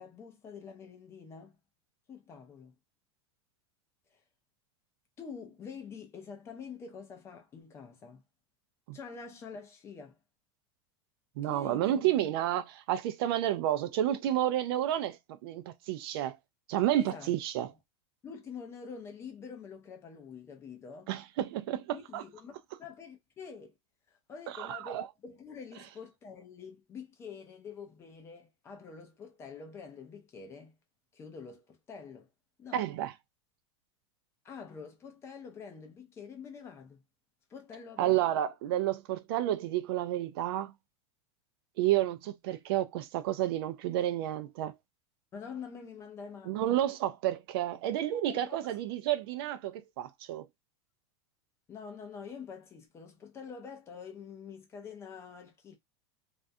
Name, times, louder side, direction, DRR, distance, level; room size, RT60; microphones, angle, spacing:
voice 1, 0.0-1.6 2.1-2.7 5.2-8.2 8.9-10.2 11.4-12.0 17.0-17.3 18.2-21.1 21.9-23.8 24.3-30.8 31.1-32.3 32.6-32.8 34.4-37.0 37.5-38.2 45.3-46.8 48.3-48.7 51.7-55.8, left 6 dB, 20° left, 0.5 m, -46 dB
voice 2, 11.4-16.4 16.7-17.7 21.1-22.2 24.5-25.1 32.7-33.1 38.0-40.7 41.8-44.7 46.5-50.5, right 12 dB, 60° right, 0.4 m, -30 dB
2.4 x 2.2 x 2.5 m
supercardioid pair, 160°, 15 cm